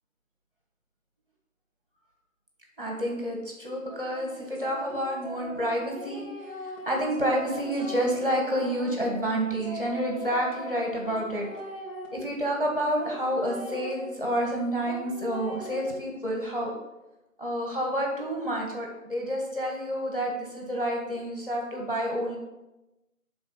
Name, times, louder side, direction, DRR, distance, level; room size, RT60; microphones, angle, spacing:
voice 1, 2.8-6.2 6.6-11.5 12.1-16.7 17.4-22.4, equal, 40° right, -1 dB, 1.2 m, -29 dB
sound 1, 3.9-12.1 13.0-15.8, equal, 45° left, 2.0 m, -41 dB
6.0 x 3.6 x 5.4 m, 1.0 s
figure-of-eight pair, 175°, 41 cm